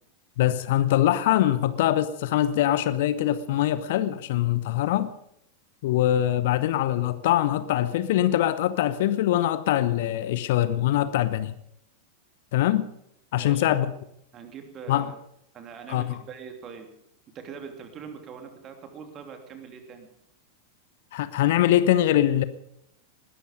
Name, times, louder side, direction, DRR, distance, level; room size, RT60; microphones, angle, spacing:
voice 1, 0.4-5.1 5.8-11.5 12.5-12.9 13.3-13.9 14.9-15.1 15.9-16.2 21.1-22.4, left 12 dB, 55° left, 0.9 m, -23 dB
voice 2, 13.3-13.9 14.3-15.1 15.5-16.9 17.3-20.1, right 6 dB, 30° right, 3.0 m, -42 dB
20.5 x 13.0 x 5.2 m
figure-of-eight pair, 90°, 0 cm